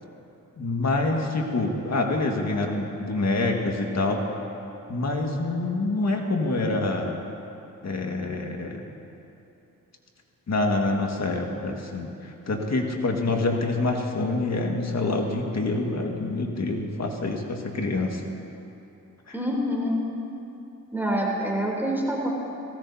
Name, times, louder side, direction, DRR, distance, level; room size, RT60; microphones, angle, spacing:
voice 1, 0.6-4.2 4.9-7.2 7.8-8.8 10.5-18.2 19.3-19.4, left 2 dB, 50° left, 1 dB, 1.8 m, -26 dB
voice 2, 19.3-20.0 20.9-22.3, equal, 5° right, -3 dB, 3.1 m, -26 dB
18.5 x 16.0 x 2.8 m, 2.8 s
cardioid pair, 65°, 35 cm